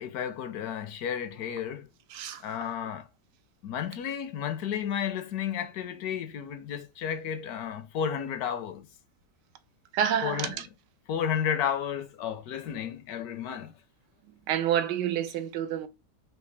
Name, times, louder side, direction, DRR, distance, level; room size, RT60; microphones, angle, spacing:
voice 1, 0.0-1.9 2.4-3.1 3.6-8.9 10.2-10.5 11.1-13.7, left 8 dB, 70° left, 1.0 m, -32 dB
voice 2, 2.1-2.4 9.9-10.6 14.5-15.9, right 9 dB, 85° right, 1.2 m, -28 dB
4.7 x 2.8 x 3.2 m
omnidirectional pair, 1.8 m